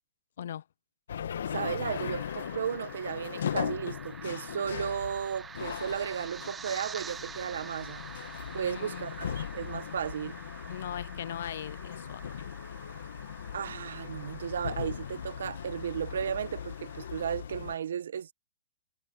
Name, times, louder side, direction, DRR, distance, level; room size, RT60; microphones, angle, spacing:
sound 1, 1.1-17.7, left 8 dB, 85° left, 1.6 m, -39 dB
voice 1, 1.5-8.0 8.5-10.4 13.5-18.3, right 8 dB, 90° right, 1.1 m, -34 dB
sound 2, 1.9-17.2, right 6 dB, 10° right, 0.6 m, -48 dB
voice 2, 8.5-9.1 10.7-12.2, left 10 dB, 65° left, 0.4 m, -39 dB
hypercardioid pair, 170°, 0 cm